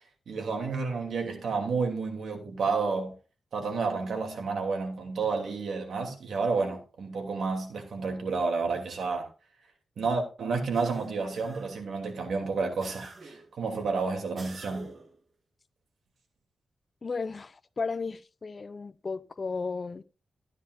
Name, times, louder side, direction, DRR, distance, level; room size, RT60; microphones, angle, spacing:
voice 1, 0.3-3.1 3.5-9.3 10.0-14.9, right 4 dB, 75° right, 3.0 m, -30 dB
sound 1, 10.7-11.9 12.8-13.5 14.4-15.2, right 3 dB, 40° right, 1.7 m, -48 dB
voice 2, 17.0-20.0, left 4 dB, 35° left, 0.6 m, -34 dB
14.5 x 9.8 x 2.6 m
wide cardioid pair, 145°, 0 cm